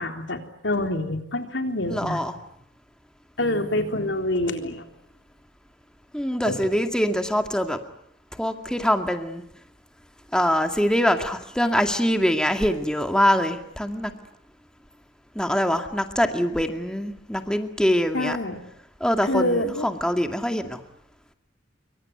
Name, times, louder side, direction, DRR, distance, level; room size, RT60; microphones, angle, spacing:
voice 1, 0.0-2.2 3.4-4.8 6.4-6.6 18.1-18.6 19.2-19.9, left 1 dB, 75° left, 6 dB, 3.8 m, -26 dB
voice 2, 1.9-2.3 6.1-7.8 8.4-9.4 10.3-14.1 15.4-18.4 19.0-20.8, equal, 5° left, 6 dB, 2.2 m, -24 dB
26.5 x 24.5 x 9.2 m, 0.73 s
head